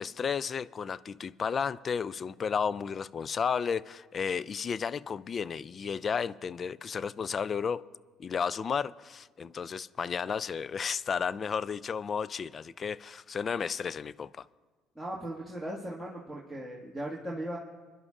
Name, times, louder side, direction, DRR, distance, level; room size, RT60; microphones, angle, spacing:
voice 1, 0.0-7.8 8.2-14.5, left 6 dB, 45° left, 0.3 m, -33 dB
voice 2, 15.0-17.6, right 1 dB, 5° left, 1.8 m, -38 dB
26.5 x 11.0 x 2.5 m
supercardioid pair, 70°, 0 cm